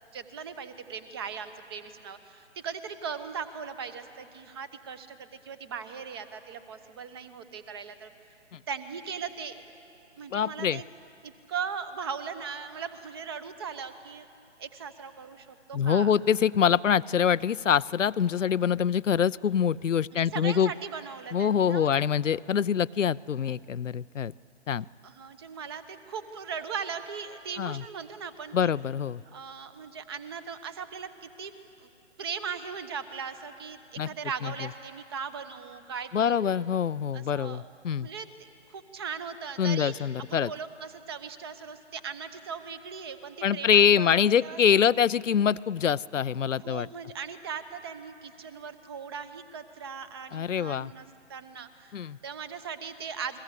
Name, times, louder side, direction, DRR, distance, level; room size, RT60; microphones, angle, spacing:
voice 1, 0.1-8.1 8.7-9.6 10.2-10.9 11.2-14.3 14.6-16.1 20.1-21.9 25.0-28.7 29.3-31.5 31.8-31.9 32.2-36.6 37.1-37.7 38.0-38.3 38.7-45.0 46.6-52.0 52.2-53.4, right 6 dB, 20° right, 12 dB, 0.9 m, -39 dB
voice 2, 10.3-10.8 15.7-20.7 21.3-24.3 24.7-24.9 27.6-27.8 28.5-29.2 34.0-34.1 34.4-34.5 36.1-38.1 39.6-40.5 43.4-46.9 50.3-50.9 51.9-52.2, left 8 dB, 85° left, 18 dB, 0.6 m, -25 dB
29.5 x 21.5 x 8.3 m, 2.7 s
figure-of-eight pair, 150°, 36 cm